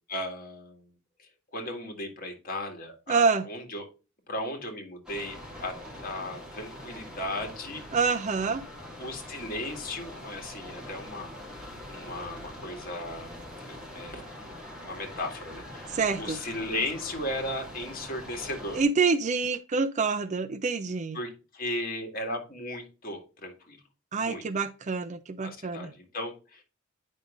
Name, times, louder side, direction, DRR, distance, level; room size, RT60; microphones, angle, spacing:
voice 1, 0.1-0.9 1.2-3.9 4.3-5.7 6.0-7.8 9.0-11.3 11.9-13.4 13.7-14.3 14.8-18.8 21.1-23.8 24.2-24.4 25.4-26.6, left 1 dB, 45° left, 2.1 m, -36 dB
voice 2, 3.1-3.4 7.9-8.6 15.9-16.4 18.7-21.2 24.1-25.9, right 4 dB, 35° right, 0.5 m, -27 dB
sound 1, 5.1-18.8, left 1 dB, 5° right, 2.1 m, -43 dB
9.2 x 5.5 x 2.5 m
head